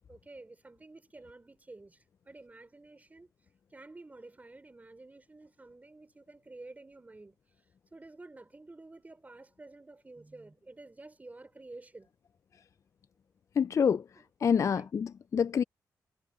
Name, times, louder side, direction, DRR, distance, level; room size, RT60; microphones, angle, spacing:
voice 1, 0.1-12.1 14.7-14.9, right 2 dB, 25° right, 3.6 m, -51 dB
voice 2, 13.6-14.0 14.4-15.6, left 7 dB, 50° left, 0.4 m, -27 dB
cardioid pair, 70°, 7 cm